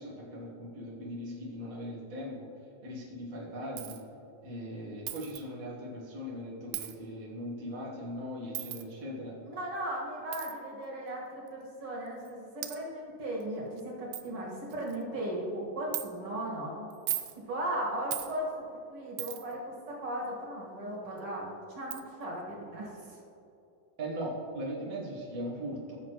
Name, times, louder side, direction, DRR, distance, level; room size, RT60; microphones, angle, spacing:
voice 1, 0.0-2.5 2.8-4.0 4.4-9.3 24.0-26.0, equal, 65° right, -5 dB, 0.8 m, -39 dB
Coin (dropping), 3.8-4.0 5.1-5.4 6.7-7.0 8.5-8.8 10.3-10.5 11.5-11.6 12.3-12.4 12.6-12.8 13.4-13.5 13.8-13.9 14.1-14.3 14.7-15.0 15.9-16.1 16.9-17.4 18.1-18.3 19.2-19.5 21.2-21.3 21.9-22.0, right 14 dB, 80° right, 1.8 m, -37 dB
voice 2, 9.4-16.9 17.5-23.2, right 1 dB, 45° right, -4 dB, 2.3 m, -37 dB
15.5 x 6.6 x 3.0 m, 2.8 s
omnidirectional pair, 4.0 m